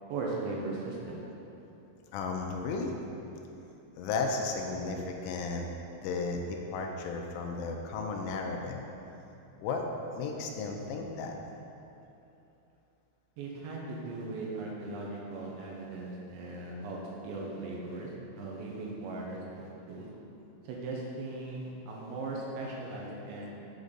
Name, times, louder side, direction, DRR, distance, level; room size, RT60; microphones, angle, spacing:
voice 1, 0.1-1.2 13.4-18.1 18.4-20.1 20.6-23.5, right 2 dB, 75° right, -3 dB, 3.1 m, -38 dB
voice 2, 2.1-2.9 4.0-5.7 6.0-8.8 9.6-9.8 10.2-11.4, left 4 dB, 85° left, 2 dB, 3.3 m, -34 dB
8.2 x 8.2 x 3.9 m, 2.9 s
omnidirectional pair, 5.6 m